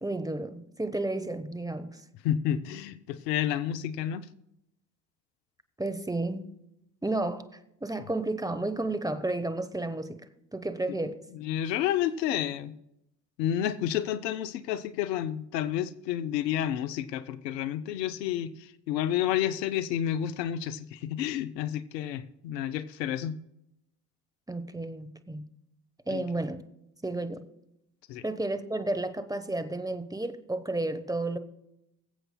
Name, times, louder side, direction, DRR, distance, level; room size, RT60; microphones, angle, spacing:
voice 1, 0.0-2.0 5.8-6.5 7.0-7.5 7.8-10.2 10.5-11.2 24.5-25.4 26.1-26.6 27.0-27.5 28.2-31.4, right 2 dB, 5° right, 1.0 m, -32 dB
voice 2, 2.2-4.3 10.9-11.0 11.3-12.7 13.4-23.4 26.1-26.2 28.1-28.2, left 11 dB, 80° left, 0.7 m, -30 dB
23.0 x 7.8 x 2.2 m
hypercardioid pair, 60°, 49 cm